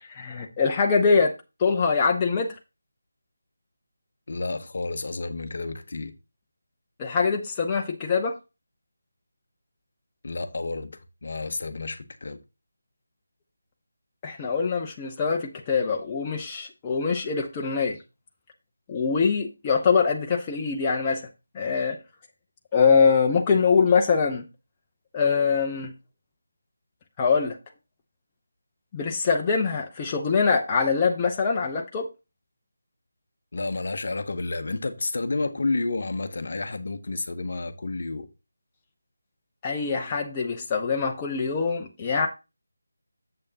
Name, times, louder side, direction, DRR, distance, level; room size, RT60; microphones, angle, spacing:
voice 1, 0.1-1.3 1.6-2.5 7.0-8.4 14.2-18.0 18.9-21.2 21.5-22.0 22.7-24.5 25.1-25.9 27.2-27.5 28.9-32.1 39.6-42.3, left 5 dB, 15° left, 0.8 m, -23 dB
voice 2, 4.3-6.1 10.2-12.4 33.5-38.3, left 3 dB, 45° left, 0.9 m, -30 dB
8.6 x 7.5 x 2.9 m
figure-of-eight pair, 160°, 0 cm